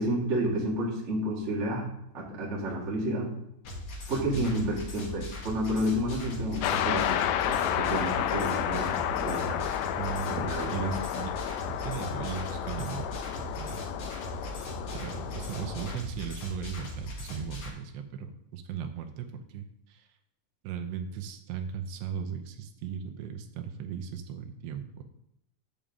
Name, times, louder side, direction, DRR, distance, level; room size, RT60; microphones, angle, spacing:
voice 1, 0.0-1.9 2.1-3.3 4.1-9.6 10.3-10.9, equal, 50° right, -3 dB, 0.8 m, -30 dB
sound 1, 3.6-17.7, left 1 dB, 60° left, 1.4 m, -39 dB
voice 2, 4.3-4.7 9.9-11.3 11.7-13.1 13.5-13.8 14.9-20.1 20.6-25.0, right 7 dB, 80° right, 5 dB, 2.9 m, -37 dB
sound 2, 6.6-16.0, left 10 dB, 85° left, 2.8 m, -31 dB
8.8 x 3.7 x 6.9 m, 0.81 s
omnidirectional pair, 5.0 m